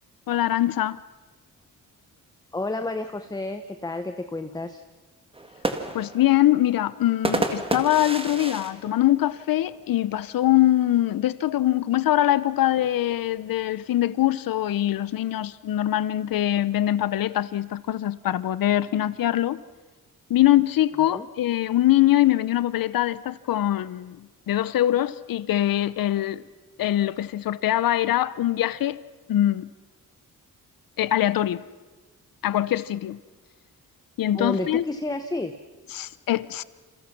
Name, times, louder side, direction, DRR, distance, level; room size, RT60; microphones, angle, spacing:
voice 1, 0.3-1.0 5.9-19.6 20.3-26.4 26.8-29.0 29.3-29.7 31.0-31.6 32.4-33.2 34.2-34.8 35.9-36.6, left 13 dB, 90° left, 0.8 m, -23 dB
voice 2, 2.5-4.8 21.1-21.3 34.3-35.6, left 2 dB, 10° left, 1.0 m, -30 dB
sound 1, 5.3-10.0 10.4-10.5 10.8-11.2 12.1-13.6, right 2 dB, 15° right, 1.9 m, -31 dB
28.5 x 28.0 x 6.0 m
wide cardioid pair, 135°, 33 cm